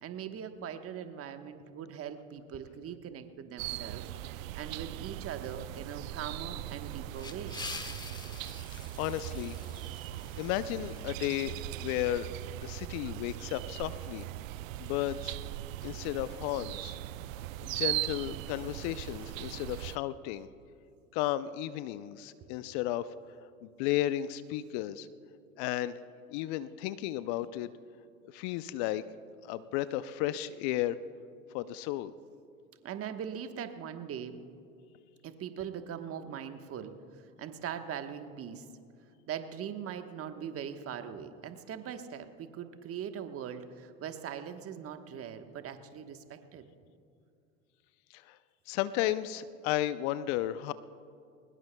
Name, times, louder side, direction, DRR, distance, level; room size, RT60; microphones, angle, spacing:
voice 1, 0.0-4.1 4.3-7.6 32.8-34.4 35.2-37.0 37.4-38.6 39.3-46.7, right 8 dB, 30° right, 8 dB, 1.2 m, -41 dB
sound 1, 3.6-20.0, right 15 dB, 65° right, 0.6 m, -39 dB
sound 2, 6.9-11.4, left 3 dB, 10° left, 1.1 m, -46 dB
voice 2, 9.0-9.6 10.4-14.2 14.8-15.4 15.8-17.0 17.6-20.5 21.1-23.1 23.6-25.1 25.6-26.0 26.3-27.7 28.3-29.0 29.4-31.0 31.5-32.1 48.1-48.4 48.7-50.7, left 13 dB, 50° left, 15 dB, 0.6 m, -33 dB
23.0 x 20.5 x 2.3 m, 2.4 s
hypercardioid pair, 90°, 43 cm